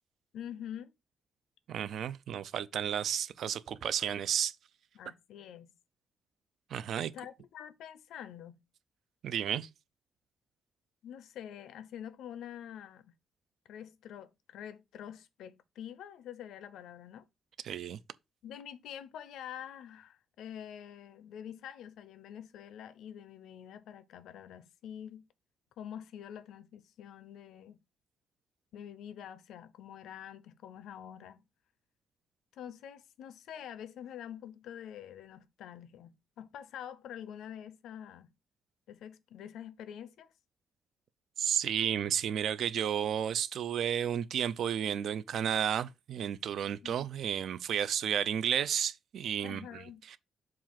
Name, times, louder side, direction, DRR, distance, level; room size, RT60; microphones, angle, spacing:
voice 1, 0.3-0.9 4.9-5.7 7.1-8.6 11.0-13.1 13.7-17.3 18.4-25.2 25.8-27.8 28.7-31.4 32.5-38.3 38.9-40.3 46.7-47.0 49.4-50.0, left 9 dB, 80° left, 0.6 m, -46 dB
voice 2, 1.7-4.6 6.7-7.1 9.2-9.7 17.6-18.0 41.4-50.2, right 9 dB, 55° right, 0.4 m, -32 dB
7.3 x 2.5 x 5.7 m
cardioid pair, 175°, 0 cm